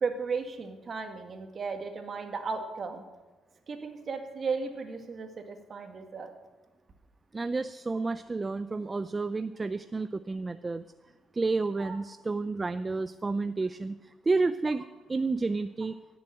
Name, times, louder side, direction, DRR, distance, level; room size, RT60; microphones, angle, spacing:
voice 1, 0.0-3.0 3.7-6.3 11.8-12.0, right 4 dB, 45° right, 5 dB, 2.0 m, -35 dB
voice 2, 7.3-10.8 11.3-16.0, right 3 dB, 25° right, 13 dB, 0.4 m, -30 dB
17.0 x 7.1 x 7.8 m, 1.3 s
cardioid pair, 90°, 0 cm